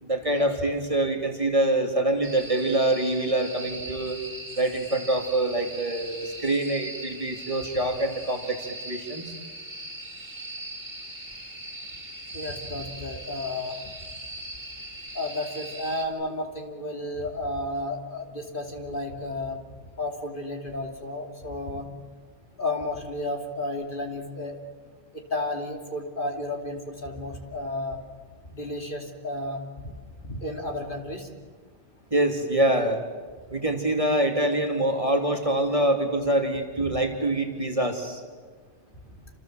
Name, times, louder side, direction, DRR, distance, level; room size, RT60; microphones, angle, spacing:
voice 1, 0.0-4.2 4.6-9.2 32.1-33.0 33.5-38.2, right 1 dB, 30° right, 3 dB, 2.7 m, -25 dB
sound 1, 2.2-16.1, right 1 dB, 55° right, 3.8 m, -40 dB
voice 2, 12.3-13.8 15.1-19.6 20.0-21.9 22.6-24.6 25.1-28.0 28.5-29.6 30.2-31.3 33.5-33.6 36.8-37.0, left 1 dB, 50° left, 3 dB, 3.0 m, -32 dB
28.5 x 27.5 x 7.5 m, 1.5 s
omnidirectional pair, 1.2 m